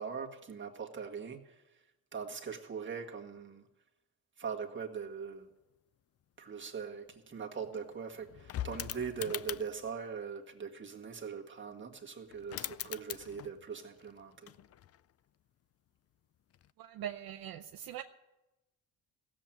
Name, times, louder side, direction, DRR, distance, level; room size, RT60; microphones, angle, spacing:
voice 1, 0.0-1.6 2.1-3.6 4.4-5.5 6.4-14.5, right 6 dB, 30° right, 1.7 m, -41 dB
sound 1, 7.1-7.2 7.4-9.9 12.0-12.1 12.3-13.7 14.0-15.1 16.5-16.7, left 11 dB, 40° left, 0.4 m, -43 dB
voice 2, 16.8-18.0, right 10 dB, 65° right, 0.7 m, -42 dB
16.0 x 7.6 x 8.9 m
cardioid pair, 115°, 39 cm